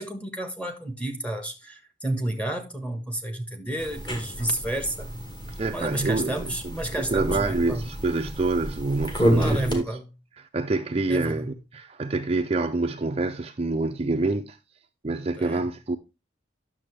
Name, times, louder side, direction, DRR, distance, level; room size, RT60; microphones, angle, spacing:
voice 1, 0.0-5.1 5.7-7.8 9.3-10.1 11.1-11.5 15.4-15.7, right 1 dB, 5° left, 1.3 m, -31 dB
sound 1, 3.8-9.8, equal, 25° left, 2.0 m, -29 dB
voice 2, 5.6-6.4 6.9-9.8 10.4-14.6 15.0-16.0, right 3 dB, 30° right, 0.5 m, -26 dB
10.5 x 6.8 x 3.3 m
head